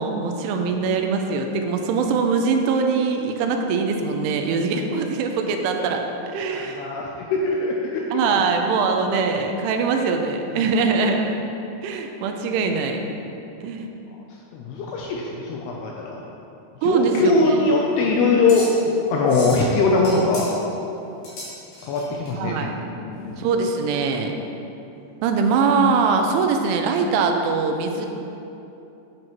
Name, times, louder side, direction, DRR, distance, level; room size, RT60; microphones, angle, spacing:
voice 1, 0.0-6.1 6.3-6.9 8.1-11.4 11.8-13.0 13.6-13.9 16.8-17.6 22.3-22.7 23.4-24.3 25.2-28.1, right 4 dB, 85° right, 4 dB, 3.0 m, -22 dB
voice 2, 6.5-8.2 10.5-10.7 14.5-16.2 16.8-18.7 19.1-20.6 21.8-22.6 22.9-23.4, left 3 dB, 90° left, -2 dB, 2.3 m, -21 dB
sound 1, 17.1-22.3, left 1 dB, 50° left, 3.1 m, -38 dB
9.6 x 8.8 x 3.1 m, 2.9 s
omnidirectional pair, 5.5 m